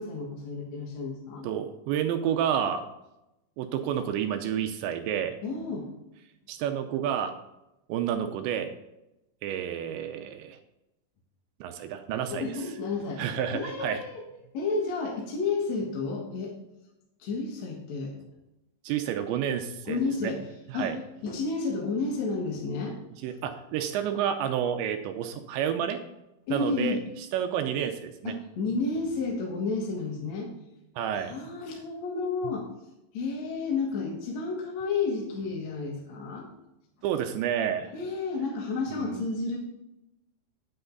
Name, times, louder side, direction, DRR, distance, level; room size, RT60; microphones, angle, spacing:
voice 1, 0.0-1.5 5.4-5.9 12.3-13.2 13.5-14.2 14.5-16.5 17.2-18.2 19.9-20.4 20.7-20.9 21.2-23.0 26.5-27.0 28.2-30.5 31.2-32.7 33.1-36.5 37.9-39.6, left 4 dB, 60° left, -1 dB, 1.9 m, -31 dB
voice 2, 1.4-2.8 3.6-5.4 6.5-7.3 7.9-8.7 9.4-10.6 11.6-12.4 13.2-14.0 18.8-20.3 20.7-21.0 23.2-26.0 26.5-27.0 27.3-28.3 31.0-31.3 37.0-37.9 38.9-39.2, right 9 dB, 80° right, 6 dB, 2.9 m, -30 dB
10.5 x 8.8 x 4.0 m, 0.90 s
omnidirectional pair, 5.4 m